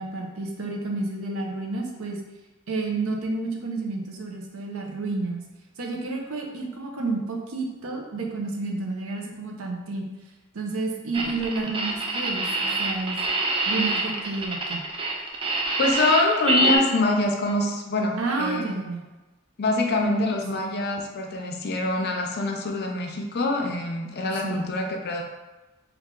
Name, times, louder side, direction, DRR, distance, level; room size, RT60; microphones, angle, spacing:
voice 1, 0.0-2.2 2.7-5.5 5.8-10.1 10.5-13.2 13.7-14.8 18.2-19.0 24.4-24.6, right 3 dB, 80° right, 1 dB, 0.6 m, -30 dB
sound 1, 11.1-16.8, right 2 dB, 25° right, 0.4 m, -25 dB
voice 2, 15.8-18.7 19.6-25.2, left 2 dB, 50° left, 1 dB, 0.5 m, -25 dB
3.2 x 2.4 x 3.6 m, 1.1 s
head